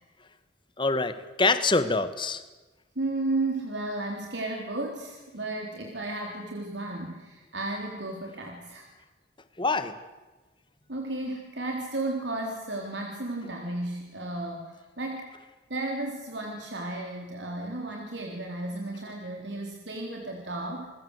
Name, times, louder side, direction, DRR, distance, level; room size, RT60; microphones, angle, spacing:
voice 1, 0.8-2.4 9.6-9.9, left 3 dB, 25° left, 11 dB, 1.6 m, -25 dB
voice 2, 3.0-8.9 10.9-15.3 15.7-20.9, right 2 dB, 75° right, 1 dB, 3.8 m, -33 dB
28.5 x 21.5 x 8.2 m, 1.2 s
head